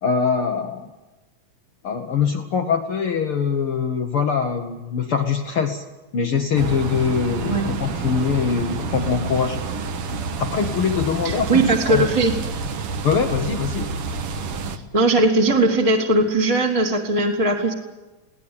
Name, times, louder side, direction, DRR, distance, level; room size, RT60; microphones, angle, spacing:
voice 1, 0.0-0.9 1.8-5.8 6.1-9.6 10.4-11.6 11.9-12.1 13.0-13.9, left 6 dB, 60° left, 5 dB, 1.4 m, -23 dB
sound 1, 6.5-14.8, right 4 dB, 55° right, 1.7 m, -28 dB
voice 2, 11.2-12.4 14.9-17.7, right 2 dB, 15° right, 0 dB, 1.6 m, -19 dB
23.0 x 17.5 x 8.7 m, 1.1 s
omnidirectional pair, 3.9 m